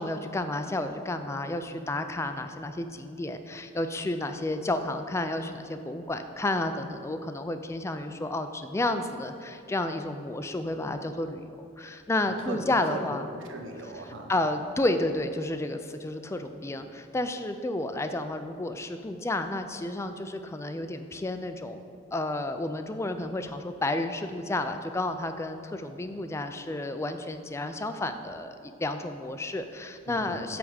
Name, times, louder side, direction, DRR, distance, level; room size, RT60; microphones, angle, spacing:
voice 1, 0.0-13.3 14.3-30.6, left 2 dB, 15° left, 8 dB, 0.3 m, -31 dB
voice 2, 12.9-14.3 30.1-30.6, right 2 dB, 80° right, 3 dB, 0.8 m, -39 dB
8.5 x 3.5 x 6.4 m, 2.4 s
head